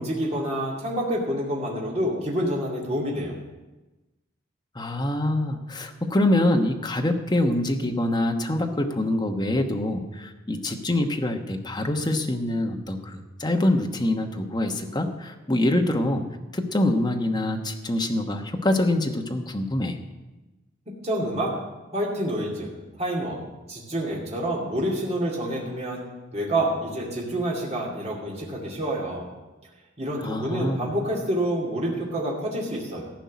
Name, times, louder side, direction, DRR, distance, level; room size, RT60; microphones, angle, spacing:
voice 1, 0.0-3.3 21.0-21.5 21.9-22.7 23.0-23.4 23.7-26.0 26.3-29.3 30.0-33.1, right 1 dB, 35° right, -3 dB, 2.5 m, -28 dB
voice 2, 4.7-16.2 16.5-20.0 30.2-30.9, left 1 dB, 20° left, 4 dB, 1.1 m, -25 dB
15.0 x 5.5 x 9.4 m, 1.1 s
head